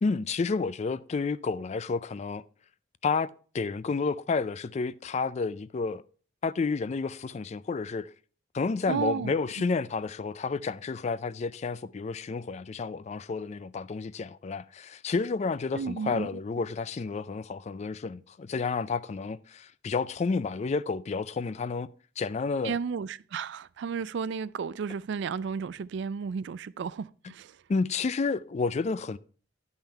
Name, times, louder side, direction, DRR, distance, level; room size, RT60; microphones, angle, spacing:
voice 1, 0.0-2.4 3.0-3.3 3.5-6.0 6.4-8.1 8.5-21.9 22.2-22.8 27.7-29.2, left 4 dB, 35° left, 0.3 m, -30 dB
voice 2, 8.9-9.3 15.7-16.3 22.6-27.6, right 6 dB, 65° right, 0.3 m, -33 dB
10.5 x 5.6 x 4.5 m
head